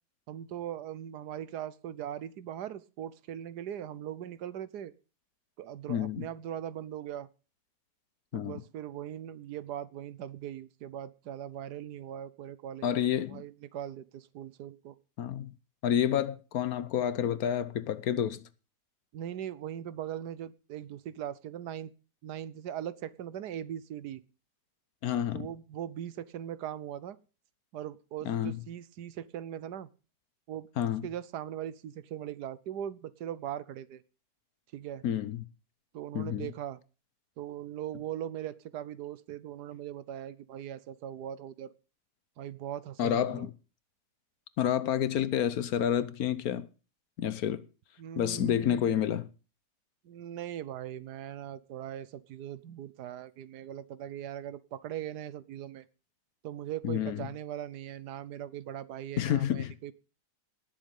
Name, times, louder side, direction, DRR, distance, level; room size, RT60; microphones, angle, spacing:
voice 1, 0.3-4.9 5.6-7.3 8.3-12.9 13.3-15.0 19.1-21.9 22.2-24.2 25.3-27.2 27.7-29.9 30.5-30.7 31.0-34.0 34.7-35.0 35.9-36.8 37.4-41.7 42.4-43.5 48.0-49.0 50.0-55.8 56.4-59.9, right 10 dB, 80° right, 1.4 m, -40 dB
voice 2, 5.9-6.3 8.3-8.6 12.8-13.4 15.2-15.5 15.8-18.4 25.0-25.5 28.2-28.6 30.8-31.1 35.0-35.4 36.1-36.5 43.0-43.5 44.6-46.7 47.2-47.6 48.2-49.3 56.8-57.3 59.2-59.7, left 10 dB, 65° left, 1.2 m, -29 dB
18.5 x 7.4 x 5.3 m
omnidirectional pair, 1.7 m